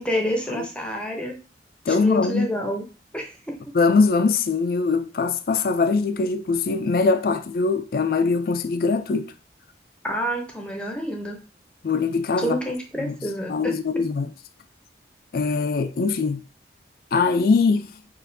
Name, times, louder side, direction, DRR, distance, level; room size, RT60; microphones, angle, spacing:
voice 1, 0.0-1.4 1.9-2.8 3.1-3.7 10.0-11.4 12.4-14.0, equal, 5° left, 0.7 m, -28 dB
voice 2, 1.9-2.5 3.7-9.3 11.8-12.6 13.0-13.1 13.5-14.3 15.3-16.4 17.1-17.9, left 4 dB, 50° left, 0.3 m, -22 dB
6.2 x 2.5 x 2.7 m
head